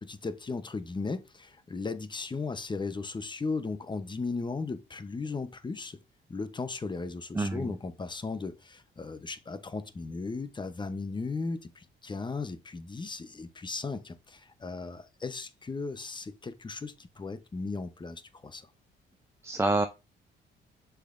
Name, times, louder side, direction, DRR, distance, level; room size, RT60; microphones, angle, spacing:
voice 1, 0.0-6.0 6.3-18.7, left 4 dB, 25° left, 0.8 m, -36 dB
voice 2, 7.3-7.8 19.4-19.9, right 2 dB, 15° right, 0.5 m, -27 dB
6.7 x 5.8 x 2.6 m
cardioid pair, 90°, 20 cm